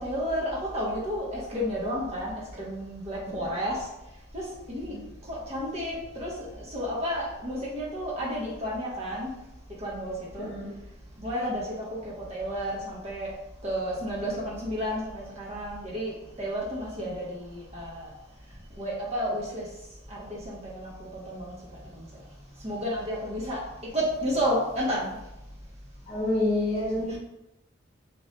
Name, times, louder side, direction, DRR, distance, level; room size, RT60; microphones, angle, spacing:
voice 1, 0.0-3.8 4.3-4.9 5.3-9.3 9.8-10.5 11.2-13.3 13.6-18.1 18.8-19.7 20.1-21.5 21.9-22.1 22.6-23.6 23.9-25.1 27.1-27.2, equal, 30° right, -5 dB, 0.7 m, -31 dB
voice 2, 10.4-10.7 26.1-27.1, left 2 dB, 30° left, -8 dB, 0.6 m, -28 dB
2.8 x 2.2 x 3.0 m, 0.92 s
head